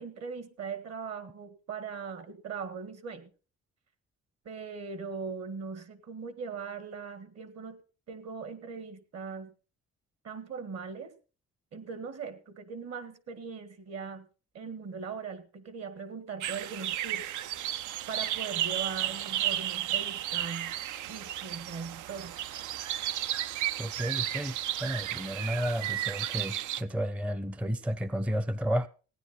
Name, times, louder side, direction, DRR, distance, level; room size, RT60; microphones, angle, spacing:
voice 1, 0.0-3.3 4.4-7.8 8.1-9.5 10.2-11.1 11.7-14.3 14.5-17.3 18.1-20.7 21.1-22.4, right 5 dB, 55° right, 1.7 m, -40 dB
sound 1, 16.4-26.8, right 12 dB, 80° right, 0.5 m, -33 dB
voice 2, 23.8-28.9, equal, 5° right, 0.5 m, -32 dB
16.0 x 9.8 x 4.2 m
cardioid pair, 90°, 30 cm